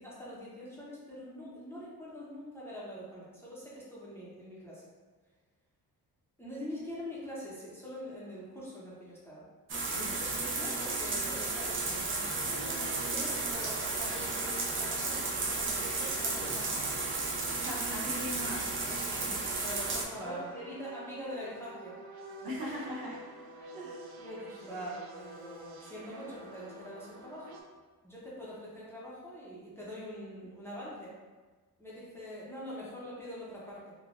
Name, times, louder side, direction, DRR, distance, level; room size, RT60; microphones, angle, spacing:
voice 1, 0.0-4.9 6.4-9.4 10.1-16.8 18.9-22.0 24.2-27.6 28.0-31.1 31.8-33.9, equal, 5° left, -8 dB, 0.6 m, -44 dB
sound 1, 9.7-20.0, right 3 dB, 35° right, 0.5 m, -33 dB
voice 2, 9.9-10.2 17.4-18.8 20.2-20.5 22.4-23.2 23.7-24.2 24.7-24.9, equal, 70° right, -4 dB, 0.8 m, -40 dB
sound 2, 12.5-27.6, right 2 dB, 90° right, 0.5 m, -48 dB
3.5 x 2.2 x 2.4 m, 1.3 s
cardioid pair, 130°, 37 cm